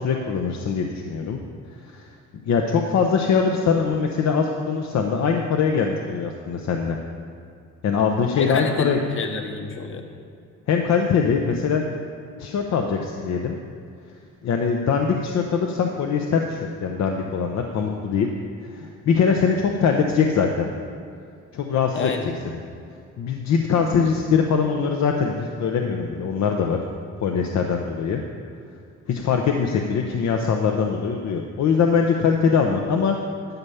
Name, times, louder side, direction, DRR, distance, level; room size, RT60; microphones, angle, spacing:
voice 1, 0.0-1.4 1.9-2.1 2.4-7.0 7.8-9.0 10.7-11.8 12.4-13.6 14.4-18.3 18.7-20.6 21.5-22.6 23.2-26.8 27.2-28.2 29.1-33.2, left 6 dB, 65° left, 3 dB, 0.8 m, -22 dB
voice 2, 8.3-10.0 21.9-22.3, left 4 dB, 40° left, 4 dB, 1.2 m, -29 dB
11.5 x 5.5 x 7.1 m, 2.3 s
cardioid pair, 90°, 30 cm